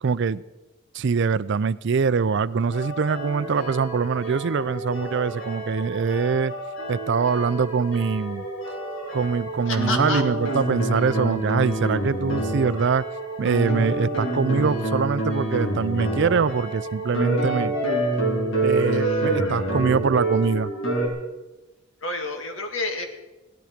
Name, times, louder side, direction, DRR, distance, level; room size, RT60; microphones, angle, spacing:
voice 1, 0.0-0.4 0.9-6.5 6.9-8.4 9.1-13.0 13.4-17.8 18.6-20.7, right 5 dB, 60° right, 17 dB, 0.4 m, -23 dB
sound 1, 2.7-21.1, right 1 dB, 85° left, 3.5 m, -27 dB
voice 2, 9.7-10.2 18.9-19.2 22.0-23.1, left 3 dB, 70° left, 4 dB, 2.0 m, -29 dB
17.0 x 12.5 x 5.1 m, 1.1 s
head